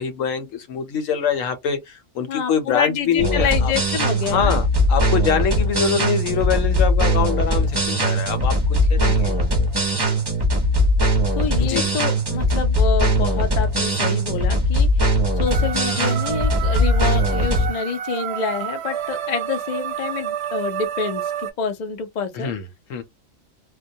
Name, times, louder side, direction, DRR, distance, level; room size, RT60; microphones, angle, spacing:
voice 1, 0.0-3.7 4.3-9.3 11.6-11.9 22.3-23.0, left 7 dB, 75° left, 1.0 m, -24 dB
voice 2, 2.3-4.6 9.0-9.4 11.3-22.5, left 6 dB, 60° left, 0.4 m, -27 dB
sound 1, 3.2-17.7, equal, 35° right, 0.4 m, -20 dB
sound 2, 15.5-21.5, right 9 dB, 65° right, 0.7 m, -29 dB
2.2 x 2.2 x 2.7 m
omnidirectional pair, 1.4 m